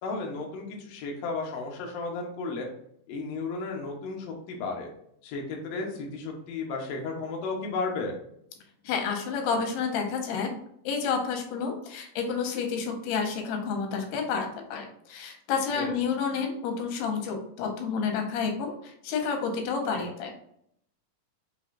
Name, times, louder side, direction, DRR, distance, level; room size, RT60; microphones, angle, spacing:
voice 1, 0.0-2.7 3.1-4.9 5.2-8.2 15.8-15.9, left 3 dB, 70° left, 0 dB, 1.7 m, -33 dB
voice 2, 8.8-10.5 10.8-20.3, left 5 dB, 90° left, 3 dB, 2.7 m, -30 dB
6.3 x 3.0 x 2.5 m, 0.71 s
omnidirectional pair, 4.1 m